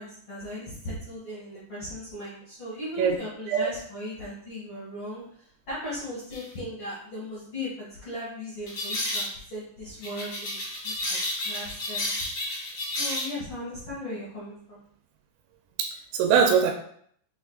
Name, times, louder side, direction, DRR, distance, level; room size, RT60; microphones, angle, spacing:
voice 1, 0.0-10.6 10.8-11.2 11.4-12.1 12.8-14.8, left 1 dB, 65° left, -9 dB, 1.3 m, -37 dB
sound 1, 6.3-6.5 8.7-9.3 10.0-13.3, left 1 dB, 50° left, 1.2 m, -31 dB
voice 2, 15.8-16.7, right 7 dB, 85° right, 2 dB, 2.9 m, -22 dB
6.2 x 3.6 x 2.4 m, 0.63 s
omnidirectional pair, 5.1 m